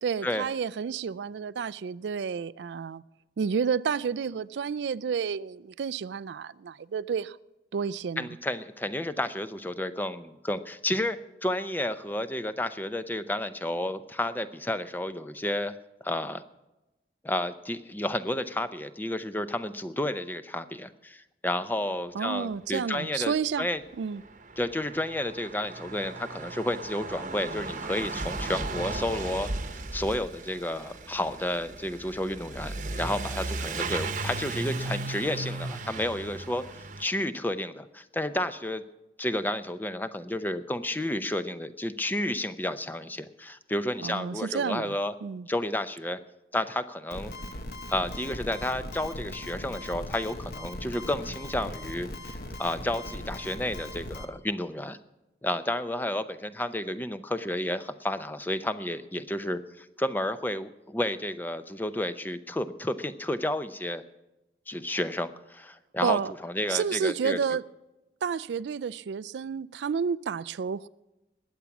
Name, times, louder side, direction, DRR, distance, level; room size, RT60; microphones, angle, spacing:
voice 1, 0.0-3.0 3.4-7.4 7.7-8.3 22.1-23.7 24.0-24.2 44.0-45.5 66.0-66.3 66.7-67.6 68.2-70.9, right 6 dB, 80° right, 0.4 m, -30 dB
voice 2, 8.2-15.7 16.0-16.4 17.2-23.8 24.6-36.6 37.0-38.8 39.2-45.1 45.5-46.2 46.5-47.3 47.9-55.0 55.4-64.0 64.7-67.4, left 1 dB, 10° left, 0.6 m, -31 dB
Truck / Accelerating revving vroom, 23.4-23.5 23.6-37.0, right 3 dB, 45° right, 1.0 m, -36 dB
sound 1, 47.1-54.3, left 1 dB, 60° left, 1.3 m, -39 dB
20.5 x 8.3 x 6.0 m
head